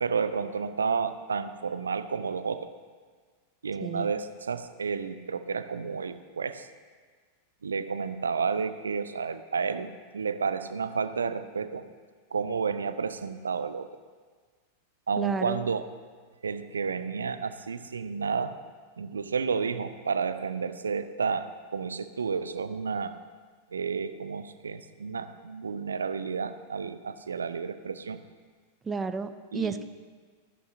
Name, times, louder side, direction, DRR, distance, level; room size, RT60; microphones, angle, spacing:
voice 1, 0.0-2.7 3.6-6.7 7.6-11.9 12.3-14.0 15.1-15.8 16.4-18.6 19.0-23.1 23.7-28.2 29.5-29.8, right 5 dB, 70° right, 12 dB, 0.5 m, -31 dB
voice 2, 15.2-15.6 28.8-29.8, right 5 dB, 15° right, 10 dB, 0.5 m, -31 dB
15.0 x 11.0 x 2.7 m, 1.5 s
figure-of-eight pair, 90°, 0 cm